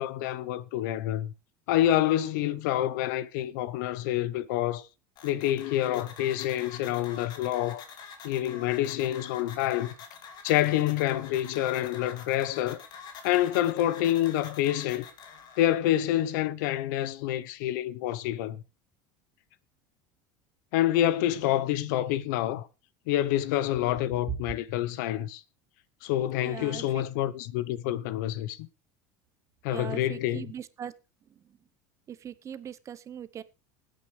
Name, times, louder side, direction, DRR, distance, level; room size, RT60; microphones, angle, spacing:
voice 1, 0.0-1.3 1.7-4.9 5.2-7.8 8.2-9.9 10.4-12.8 13.2-15.1 15.6-18.6 20.7-22.7 23.1-25.4 26.0-28.7 29.6-30.5, left 13 dB, 80° left, 0.8 m, -27 dB
sound 1, 5.2-15.8, left 6 dB, 45° left, 2.6 m, -47 dB
voice 2, 26.4-26.8 29.7-30.9 32.1-33.4, right 9 dB, 30° right, 0.9 m, -40 dB
20.0 x 9.1 x 3.2 m
supercardioid pair, 130°, 10 cm